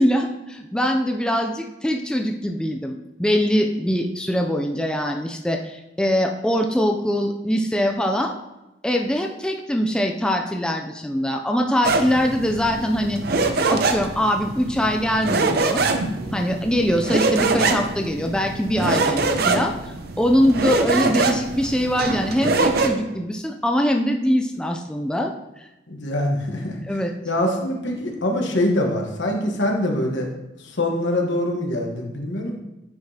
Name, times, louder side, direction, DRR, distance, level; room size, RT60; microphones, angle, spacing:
voice 1, 0.0-8.3 8.8-13.2 13.7-15.8 16.3-19.7 20.2-25.3 26.9-27.1, equal, 5° left, 3 dB, 0.3 m, -22 dB
sound 1, 11.8-22.9, right 3 dB, 55° right, 0.6 m, -24 dB
voice 2, 25.9-26.8 27.2-30.3 30.6-32.6, left 1 dB, 75° left, 1 dB, 1.2 m, -24 dB
9.5 x 4.8 x 2.8 m, 1.0 s
head